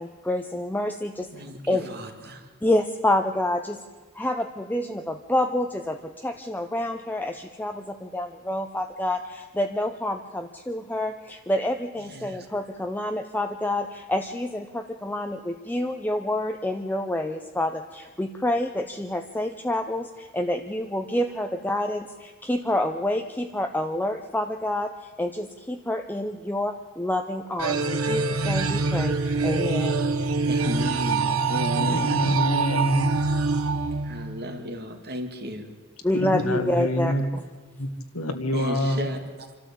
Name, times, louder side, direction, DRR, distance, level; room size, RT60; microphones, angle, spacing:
voice 1, 0.0-1.3 1.7-1.9 2.6-3.8 4.1-30.0 36.0-37.1, left 1 dB, 10° left, 5 dB, 0.7 m, -28 dB
voice 2, 1.3-2.5 12.0-12.5 30.5-32.3 32.7-32.9 34.0-35.7 36.7-36.9 38.5-39.5, equal, 50° right, 5 dB, 2.4 m, -34 dB
sound 1, 27.6-34.6, right 4 dB, 80° right, 1.4 m, -25 dB
voice 3, 31.8-33.2 36.1-37.3 37.7-39.1, equal, 80° left, 7 dB, 1.9 m, -26 dB
26.5 x 12.5 x 8.6 m, 1.4 s
head